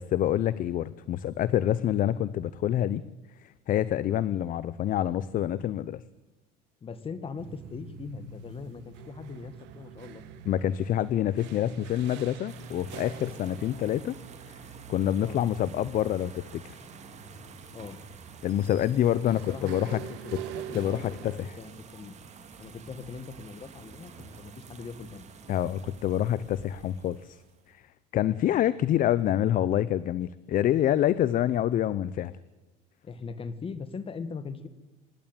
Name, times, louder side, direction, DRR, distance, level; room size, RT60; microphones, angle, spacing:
voice 1, 0.1-3.0 3.4-6.0 10.5-14.1 14.5-14.6 14.9-16.8 18.4-20.0 20.7-21.5 25.5-27.4 27.7-27.8 28.1-32.3, left 11 dB, 50° left, 18 dB, 0.7 m, -27 dB
voice 2, 6.8-10.2 15.2-15.4 17.7-18.0 19.2-22.2 22.6-25.3 33.0-34.7, left 5 dB, 30° left, 13 dB, 1.9 m, -40 dB
sound 1, 7.4-21.5, right 8 dB, 80° right, 2.0 m, -45 dB
sound 2, 12.5-27.7, right 5 dB, 40° right, 3.0 m, -49 dB
26.0 x 11.0 x 9.1 m, 1.1 s
cardioid pair, 115°, 18 cm